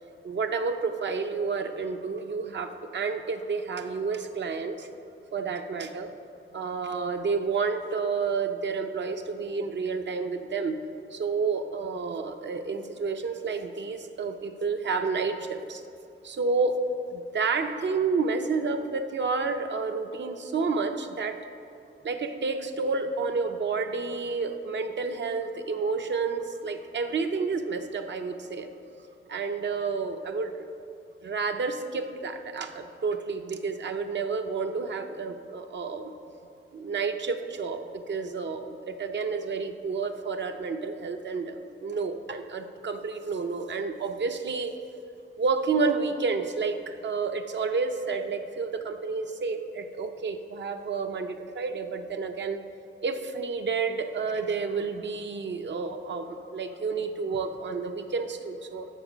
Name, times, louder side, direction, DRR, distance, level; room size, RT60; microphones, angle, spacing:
voice 1, 0.2-4.9 5.3-6.1 6.5-10.8 11.1-15.8 16.2-16.8 17.1-21.4 22.0-28.7 29.3-30.5 31.2-36.1 36.7-44.7 45.4-52.6 53.0-58.9, right 4 dB, 60° right, 6 dB, 0.6 m, -30 dB
13.5 x 5.3 x 5.0 m, 2.6 s
wide cardioid pair, 145°, 21 cm